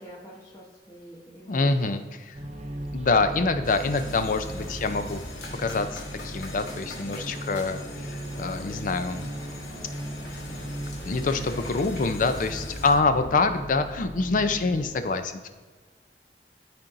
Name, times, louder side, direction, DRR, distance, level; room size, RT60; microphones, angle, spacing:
voice 1, 0.0-2.1 13.1-13.3, equal, 20° left, -7 dB, 1.0 m, -47 dB
voice 2, 1.5-2.0 2.3-2.4 2.9-5.2 5.6-9.3 10.5-10.7 11.0-15.5, left 3 dB, 50° left, 9 dB, 0.5 m, -26 dB
sound 1, 2.3-14.9, right 1 dB, 40° right, 0.7 m, -37 dB
sound 2, 3.6-13.0, left 2 dB, 70° left, 1.5 m, -42 dB
12.5 x 4.3 x 2.6 m, 1.4 s
head